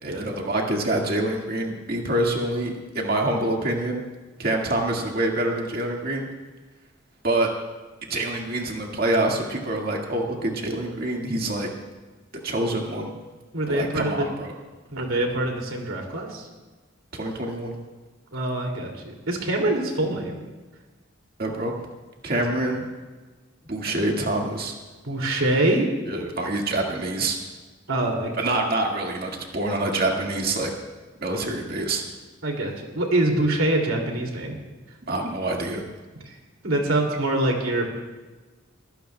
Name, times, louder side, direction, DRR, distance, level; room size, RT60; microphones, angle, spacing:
voice 1, 0.0-4.0 4.4-6.3 7.2-7.5 8.0-11.7 12.4-13.1 13.7-14.5 17.1-17.8 21.4-21.7 22.2-22.9 23.7-24.7 26.1-27.4 28.4-30.7 31.2-32.0 35.1-35.8, right 1 dB, 50° right, 0 dB, 1.9 m, -26 dB
voice 2, 13.5-14.3 14.9-16.5 18.3-20.3 25.0-25.9 27.9-28.4 32.4-34.5 36.6-37.9, right 1 dB, 85° right, 1 dB, 2.6 m, -24 dB
23.0 x 16.0 x 2.3 m, 1.3 s
head